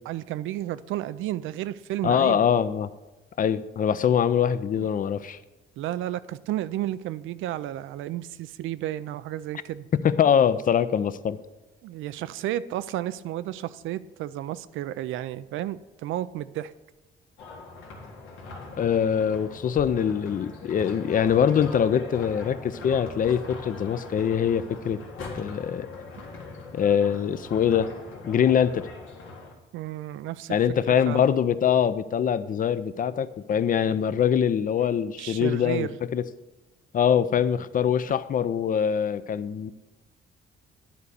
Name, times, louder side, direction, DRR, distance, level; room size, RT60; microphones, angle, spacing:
voice 1, 0.1-2.4 4.7-4.9 5.8-9.9 11.8-16.7 29.7-30.6 30.9-31.2 35.2-36.0, right 13 dB, 85° right, 16 dB, 0.4 m, -32 dB
voice 2, 2.0-2.9 3.4-5.4 9.9-11.4 18.8-25.0 25.3-25.9 26.7-27.9 28.2-28.9 30.5-36.2 36.9-39.7, left 8 dB, 45° left, 15 dB, 0.5 m, -23 dB
sound 1, 17.4-29.5, left 3 dB, 90° left, 1.8 m, -41 dB
10.5 x 4.2 x 6.6 m, 1.1 s
cardioid pair, 90°, 20 cm